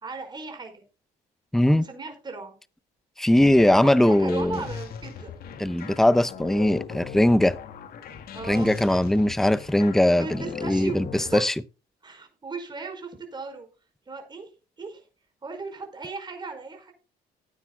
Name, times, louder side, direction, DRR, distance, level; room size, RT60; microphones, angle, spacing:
voice 1, 0.0-0.8 1.7-2.5 3.3-5.3 5.7-6.0 8.3-8.7 10.2-11.5 12.0-13.7 14.1-14.5 14.8-15.0 15.4-16.9, right 4 dB, 25° right, 5.0 m, -37 dB
voice 2, 1.5-1.9 3.2-4.6 5.6-7.6 8.5-11.5, left 1 dB, ahead, 0.6 m, -20 dB
sound 1, 3.4-11.4, left 7 dB, 65° left, 2.2 m, -39 dB
18.5 x 9.6 x 2.3 m
cardioid pair, 110°, 17 cm